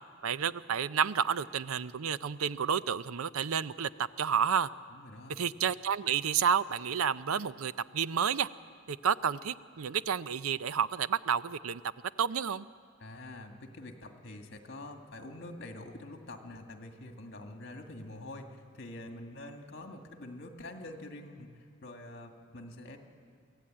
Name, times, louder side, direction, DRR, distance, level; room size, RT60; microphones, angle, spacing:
voice 1, 0.2-4.7 5.3-8.5 8.9-11.8 12.2-12.7, right 7 dB, 85° right, 16 dB, 0.5 m, -30 dB
voice 2, 4.9-5.4 13.0-18.5 18.7-21.5 21.8-23.0, left 1 dB, 55° left, 4 dB, 2.0 m, -46 dB
24.0 x 15.5 x 8.8 m, 2.2 s
head